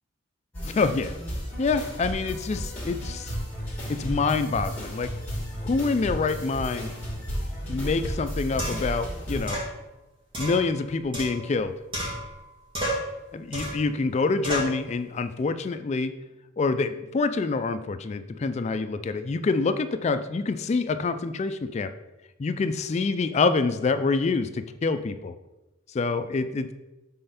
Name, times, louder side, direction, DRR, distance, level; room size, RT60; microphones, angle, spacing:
sound 1, 0.5-9.5, equal, 10° left, 2.4 m, -33 dB
voice 1, 0.6-1.1 1.6-3.3 3.9-5.1 5.6-6.9 7.7-9.6 10.4-11.7 13.3-16.1 16.6-21.9 22.4-25.3 25.9-26.7, left 4 dB, 35° left, 10 dB, 0.3 m, -26 dB
sound 2, 8.6-9.0 9.5-9.7 10.3-11.6 11.9-12.5 12.7-13.1 13.5-13.9 14.4-14.8, equal, 25° right, 2.1 m, -31 dB
5.5 x 4.2 x 5.7 m, 1.0 s
head